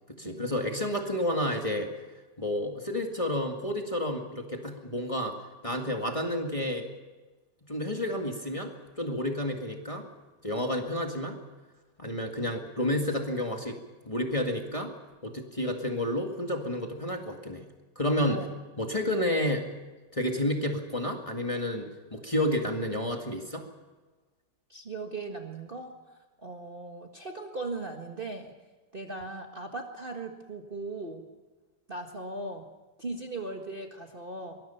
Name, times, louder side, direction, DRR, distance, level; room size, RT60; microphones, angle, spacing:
voice 1, 0.2-1.9 2.4-5.4 5.6-6.9 7.7-10.1 10.4-11.4 12.0-13.8 14.0-14.9 15.2-17.7 18.0-18.5 18.8-19.7 20.1-23.6, left 1 dB, 15° left, 2 dB, 2.0 m, -30 dB
voice 2, 24.7-26.0 26.4-28.5 28.9-31.3 31.9-32.7 33.0-34.6, right 2 dB, 30° right, 2 dB, 1.6 m, -38 dB
24.0 x 21.0 x 5.8 m, 1.2 s
omnidirectional pair, 2.1 m